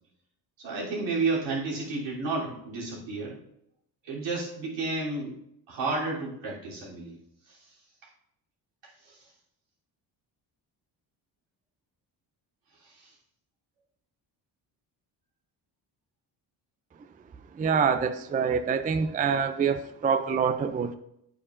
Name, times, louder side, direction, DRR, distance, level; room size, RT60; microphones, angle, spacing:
voice 1, 0.6-3.4 4.0-5.3 5.7-7.2 7.5-7.7 9.0-9.3 12.8-13.1, right 3 dB, 75° right, -6 dB, 3.3 m, -32 dB
voice 2, 17.6-21.0, right 6 dB, 20° right, 10 dB, 0.3 m, -26 dB
8.8 x 8.4 x 2.5 m, 0.78 s
cardioid pair, 95°, 43 cm